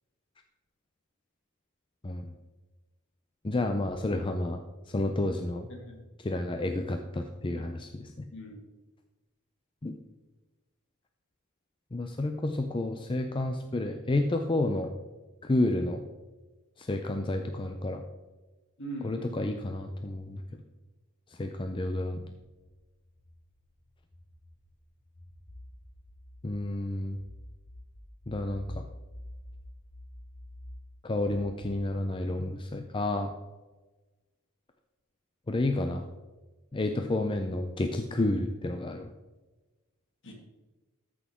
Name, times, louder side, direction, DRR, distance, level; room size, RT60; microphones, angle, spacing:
voice 1, 3.4-4.6 4.9-5.7 6.2-8.1 9.8-9.9 11.9-14.9 15.4-16.0 16.8-18.0 19.0-20.4 21.4-22.2 26.4-27.2 28.3-28.8 31.0-33.3 35.5-36.0 36.7-39.1, left 2 dB, 20° left, 5 dB, 0.5 m, -30 dB
voice 2, 5.7-6.0 8.3-8.6 18.8-19.6 40.2-40.3, right 1 dB, 55° left, 0 dB, 2.3 m, -41 dB
sound 1, 22.4-31.7, left 1 dB, 40° left, 3.5 m, -48 dB
13.5 x 6.2 x 3.7 m, 1.2 s
head